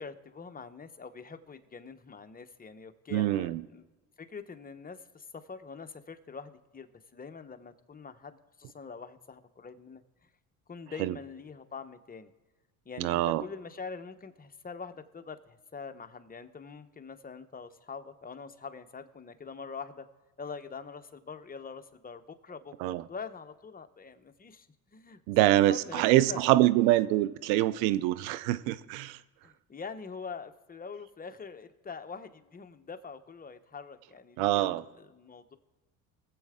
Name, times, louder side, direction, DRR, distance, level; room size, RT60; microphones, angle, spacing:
voice 1, 0.0-3.8 4.2-6.9 7.1-10.0 10.7-12.3 12.9-20.1 20.4-24.7 24.9-26.4 29.4-35.6, left 5 dB, 20° left, 0.9 m, -44 dB
voice 2, 3.1-3.6 11.0-11.2 13.0-13.4 22.8-23.0 25.3-29.2 34.4-34.8, right 15 dB, 85° right, 0.6 m, -25 dB
21.0 x 7.6 x 3.7 m
supercardioid pair, 80°, 41 cm